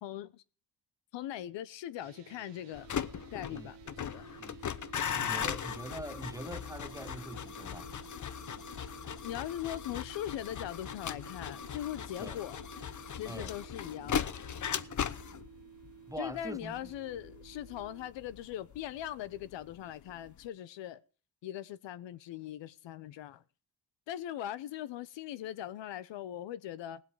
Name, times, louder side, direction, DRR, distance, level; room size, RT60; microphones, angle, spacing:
voice 1, 0.0-0.4 1.1-2.9 3.3-4.3 9.2-12.6 13.1-14.4 16.2-21.0 21.4-23.4 24.1-27.0, left 12 dB, 80° left, 1.0 m, -40 dB
sound 1, 2.0-18.1, right 9 dB, 70° right, 1.5 m, -53 dB
sound 2, 2.7-19.7 20.0-20.5, left 8 dB, 40° left, 0.9 m, -39 dB
voice 2, 5.1-7.9 12.2-12.4 13.3-13.5 16.1-16.8, right 1 dB, 10° right, 0.7 m, -43 dB
18.5 x 7.9 x 4.9 m
supercardioid pair, 70°, 43 cm